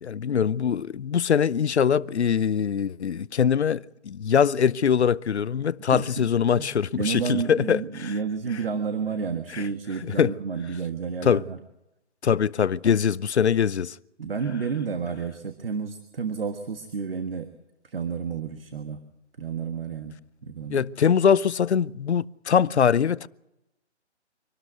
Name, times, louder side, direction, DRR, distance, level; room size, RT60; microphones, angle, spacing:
voice 1, 0.0-8.1 9.5-9.6 10.0-10.3 11.2-11.4 12.2-14.0 20.7-23.3, left 7 dB, 65° left, 0.7 m, -23 dB
voice 2, 5.9-6.2 6.5-11.6 14.2-17.5 17.8-19.0 19.4-20.2 20.4-20.9, right 6 dB, 55° right, 1.6 m, -31 dB
25.5 x 12.5 x 9.3 m
hypercardioid pair, 170°, 35 cm